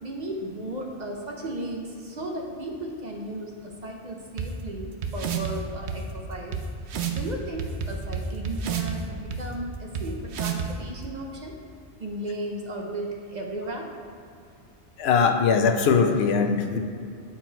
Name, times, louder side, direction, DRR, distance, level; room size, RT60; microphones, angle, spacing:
voice 1, 0.0-6.6 7.1-11.5 12.0-13.9, right 1 dB, 45° right, 1 dB, 0.7 m, -35 dB
sound 1, 4.4-4.5 5.0-5.5 5.9-6.0 6.5-6.6 6.9-7.2 7.6-9.0 9.3-9.4 9.9-10.0 10.3-10.7, right 8 dB, 75° right, 0.9 m, -29 dB
voice 2, 15.0-16.8, left 5 dB, 70° left, 6 dB, 0.9 m, -21 dB
7.9 x 4.4 x 4.5 m, 2.4 s
omnidirectional pair, 1.2 m